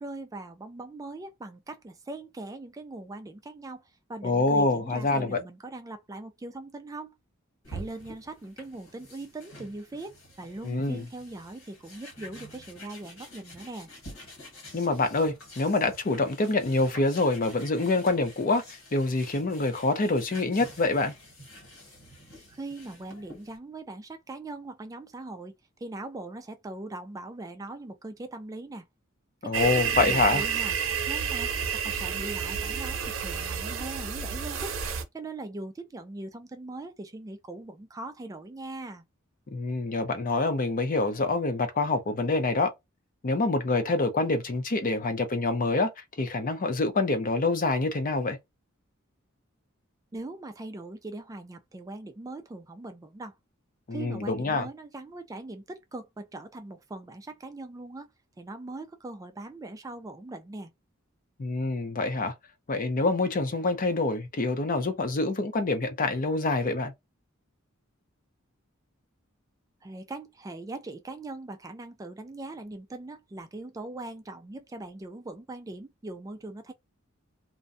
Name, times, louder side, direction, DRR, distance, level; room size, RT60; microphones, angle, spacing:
voice 1, 0.0-7.1 7.7-13.9 22.5-28.8 29.4-30.7 31.1-34.8 35.1-39.0 50.1-53.3 53.9-58.1 58.4-60.7 69.8-76.7, right 2 dB, 15° right, 0.3 m, -41 dB
voice 2, 4.2-5.4 10.6-11.0 14.7-21.1 29.4-30.4 39.5-42.7 43.2-45.9 46.2-48.4 53.9-54.7 61.4-62.3 62.7-66.9, left 3 dB, 40° left, 0.6 m, -26 dB
sound 1, 7.6-23.6, equal, 80° left, 1.5 m, -48 dB
sound 2, 29.5-35.0, right 7 dB, 70° right, 0.6 m, -30 dB
2.5 x 2.2 x 2.5 m
head